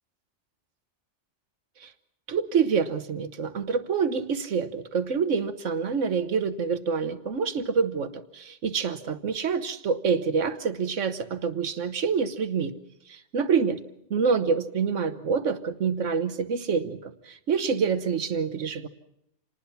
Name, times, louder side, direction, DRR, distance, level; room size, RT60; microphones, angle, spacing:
voice 1, 2.3-12.7 13.1-13.8 14.1-18.9, right 5 dB, 85° right, 11 dB, 1.5 m, -27 dB
27.5 x 20.0 x 5.8 m, 0.77 s
omnidirectional pair, 1.2 m